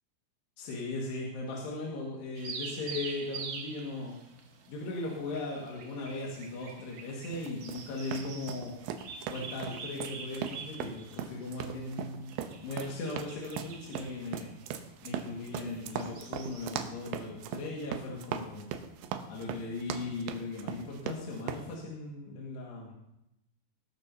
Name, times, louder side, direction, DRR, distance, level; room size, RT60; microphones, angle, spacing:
voice 1, 0.6-4.2 4.7-8.7 9.3-12.3 12.6-14.5 15.0-18.7 19.3-22.9, left 2 dB, 80° left, -3 dB, 3.9 m, -38 dB
sound 1, 2.3-16.9, right 5 dB, 60° right, 2.2 m, -46 dB
sound 2, 7.3-21.7, right 8 dB, 85° right, 3.0 m, -40 dB
20.0 x 12.5 x 2.7 m, 0.86 s
omnidirectional pair, 4.8 m